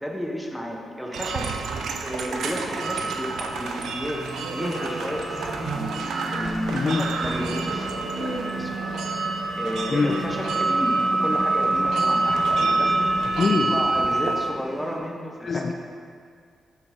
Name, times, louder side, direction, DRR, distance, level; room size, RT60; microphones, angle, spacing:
voice 1, 0.0-1.5 2.0-9.3 9.6-15.7, equal, 5° left, 0 dB, 0.8 m, -32 dB
sound 1, 1.1-14.5, right 3 dB, 85° right, 0.5 m, -27 dB
sound 2, 2.0-15.0, equal, 20° right, 1.2 m, -34 dB
voice 2, 6.7-7.0 9.9-10.2 13.3-13.8 15.4-15.7, left 4 dB, 40° left, 5 dB, 0.3 m, -23 dB
6.7 x 4.4 x 5.7 m, 2.1 s
cardioid pair, 125°, 0 cm